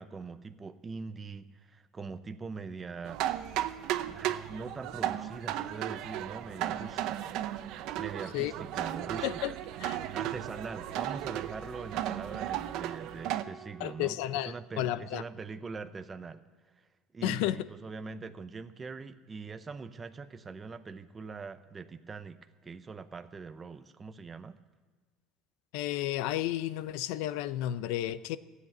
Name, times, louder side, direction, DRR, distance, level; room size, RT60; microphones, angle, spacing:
voice 1, 0.0-3.2 4.0-7.4 8.0-9.3 10.1-16.4 17.1-24.6, right 4 dB, 20° right, 10 dB, 0.6 m, -42 dB
sound 1, 3.0-13.4, right 12 dB, 60° right, 0.7 m, -35 dB
Wind instrument woodwind instrument, 7.2-15.8, right 7 dB, 35° right, 1.8 m, -52 dB
voice 2, 13.8-15.2 17.2-17.6 25.7-28.4, left 13 dB, 75° left, 15 dB, 0.6 m, -32 dB
15.0 x 8.0 x 9.3 m, 1.4 s
cardioid pair, 145°, 0 cm